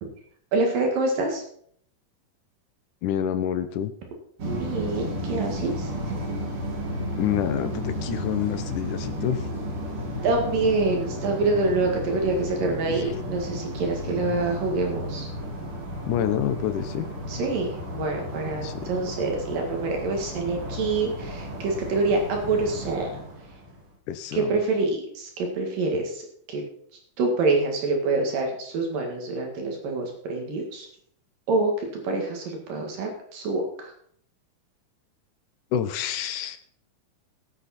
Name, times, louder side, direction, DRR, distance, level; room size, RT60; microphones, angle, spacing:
voice 1, 0.5-1.4 4.5-6.4 10.2-15.3 17.3-23.2 24.3-26.6 27.2-30.9 31.5-33.9, right 3 dB, 70° right, 2 dB, 3.5 m, -26 dB
voice 2, 3.0-3.9 7.2-9.5 12.9-13.0 14.1-14.4 16.1-17.1 18.6-18.7 24.1-24.5 35.7-36.6, left 10 dB, 75° left, 10 dB, 2.1 m, -27 dB
sound 1, 4.4-23.9, equal, 40° right, 2.8 m, -33 dB
18.0 x 8.4 x 4.3 m, 0.63 s
omnidirectional pair, 4.1 m